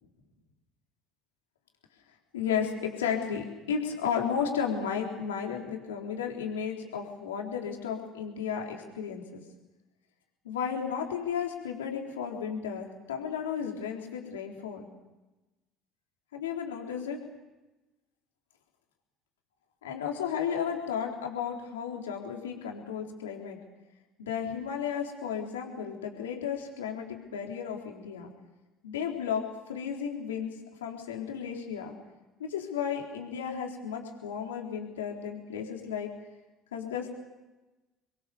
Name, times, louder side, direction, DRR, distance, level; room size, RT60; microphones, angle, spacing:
voice 1, 2.3-9.4 10.4-14.9 16.3-17.2 19.8-23.6 24.2-28.3 28.8-30.6 30.8-31.9 32.4-36.1 36.7-37.1, left 7 dB, 85° left, 1 dB, 4.0 m, -33 dB
28.0 x 22.5 x 7.1 m, 1.1 s
hypercardioid pair, 65°, 0 cm